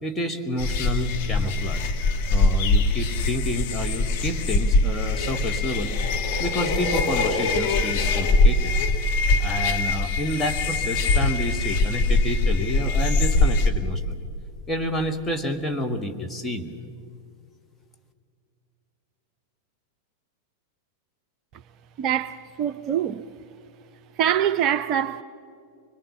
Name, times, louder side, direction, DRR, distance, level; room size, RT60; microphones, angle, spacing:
voice 1, 0.0-1.9 2.3-6.0 6.4-8.8 9.4-14.2 14.7-16.7, left 1 dB, 10° left, 1.7 m, -29 dB
sound 1, 0.6-13.7, left 2 dB, 45° left, 1.6 m, -22 dB
voice 2, 22.0-23.2 24.2-25.2, right 9 dB, 35° right, 0.6 m, -24 dB
24.0 x 22.0 x 7.2 m
figure-of-eight pair, 90°, 0 cm